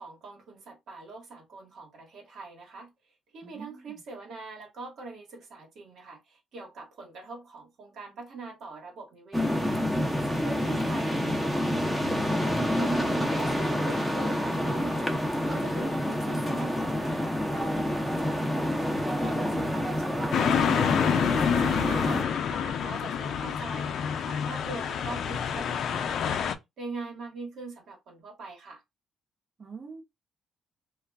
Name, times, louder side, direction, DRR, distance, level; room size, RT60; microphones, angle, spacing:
voice 1, 0.0-2.9 3.3-9.8 10.2-11.7 12.2-15.1 15.5-21.0 21.4-26.4 26.8-28.8, right 3 dB, 70° right, 1.2 m, -43 dB
voice 2, 3.4-4.0 29.6-30.0, right 5 dB, 40° right, 0.9 m, -45 dB
sound 1, 9.3-22.2, equal, ahead, 0.8 m, -28 dB
sound 2, 20.3-26.5, left 7 dB, 70° left, 0.4 m, -27 dB
2.3 x 2.2 x 3.4 m
cardioid pair, 90°, 0 cm